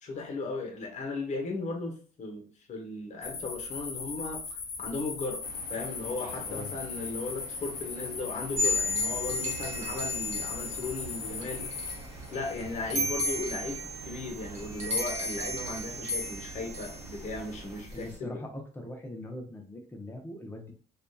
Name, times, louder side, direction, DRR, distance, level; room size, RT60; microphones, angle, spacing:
voice 1, 0.0-5.4 5.7-11.7 12.3-18.4, left 3 dB, 45° left, 2 dB, 0.9 m, -36 dB
sound 1, 3.2-12.0, left 5 dB, 75° left, 0.8 m, -39 dB
sound 2, 5.4-17.8, right 3 dB, 25° right, 1.3 m, -48 dB
sound 3, 8.6-18.1, left 1 dB, 40° right, 1.2 m, -34 dB
voice 2, 17.9-20.7, left 1 dB, 15° left, 2 dB, 0.7 m, -41 dB
2.8 x 2.4 x 2.2 m, 0.43 s
cardioid pair, 110°, 17 cm